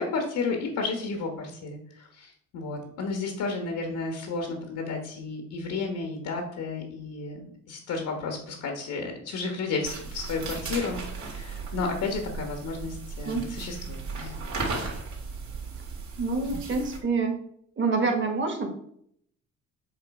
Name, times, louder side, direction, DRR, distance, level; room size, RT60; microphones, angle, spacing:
voice 1, 0.0-14.3, left 4 dB, 80° left, 3 dB, 1.3 m, -32 dB
sound 1, 9.8-17.0, right 4 dB, 65° right, 2.0 m, -36 dB
voice 2, 16.2-17.4 17.8-18.7, right 4 dB, 40° right, 3 dB, 1.6 m, -26 dB
7.5 x 3.2 x 4.8 m, 0.67 s
cardioid pair, 90°, 30 cm